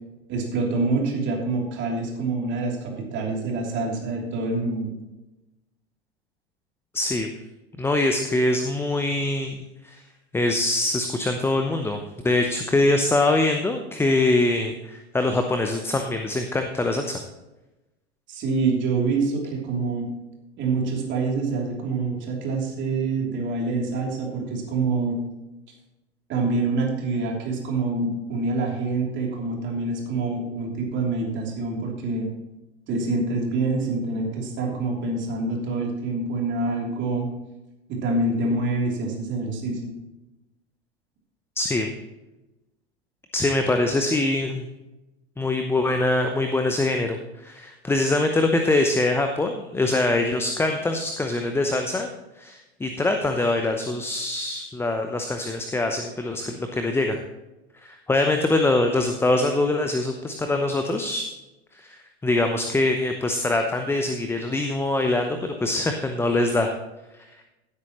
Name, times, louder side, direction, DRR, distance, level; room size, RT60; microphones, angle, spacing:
voice 1, 0.3-4.9 18.3-20.1 20.6-25.2 26.3-32.3 32.9-37.3 37.9-39.9, right 3 dB, 35° right, -1 dB, 3.2 m, -26 dB
voice 2, 6.9-7.3 7.8-9.6 9.8-10.0 10.3-17.2 41.6-41.9 43.3-44.7 45.4-52.1 52.3-57.2 57.8-61.3 61.7-66.7, left 2 dB, 5° left, 5 dB, 0.8 m, -23 dB
16.0 x 8.3 x 3.1 m, 1.0 s
figure-of-eight pair, 85°, 32 cm